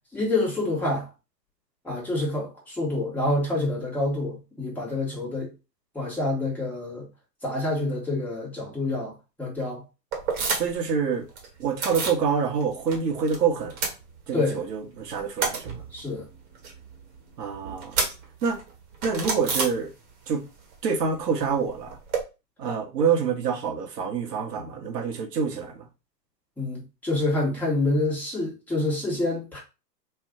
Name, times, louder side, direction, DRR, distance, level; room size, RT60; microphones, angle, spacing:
voice 1, 0.1-1.1 1.8-5.5 5.9-7.1 7.4-9.1 9.4-9.8 14.3-14.6 15.9-16.3 26.6-29.6, left 2 dB, 5° left, 1.4 m, -27 dB
sound 1, 10.1-10.9 11.1-12.2 12.6-13.4 13.6-14.6 15.0-20.3 20.6-22.2, right 4 dB, 40° right, 1.4 m, -31 dB
voice 2, 10.6-11.3 11.6-13.8 14.3-15.7 17.4-18.0 18.4-18.6 19.0-19.9 20.3-20.5 20.8-22.0 22.6-25.9, right 6 dB, 70° right, 1.2 m, -26 dB
3.2 x 2.5 x 3.7 m
hypercardioid pair, 125°, 50 cm